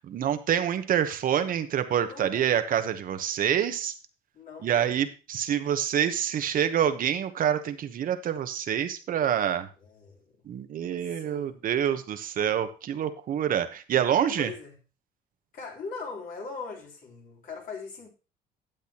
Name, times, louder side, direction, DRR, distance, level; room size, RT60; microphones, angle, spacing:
voice 1, 0.0-3.9 4.6-9.7 10.5-14.5, right 9 dB, 55° right, 1.1 m, -27 dB
voice 2, 2.0-2.6 4.3-4.9 9.8-10.4 11.0-11.6 14.4-14.7 15.5-18.1, left 4 dB, 55° left, 3.6 m, -40 dB
12.0 x 8.3 x 2.9 m
cardioid pair, 110°, 17 cm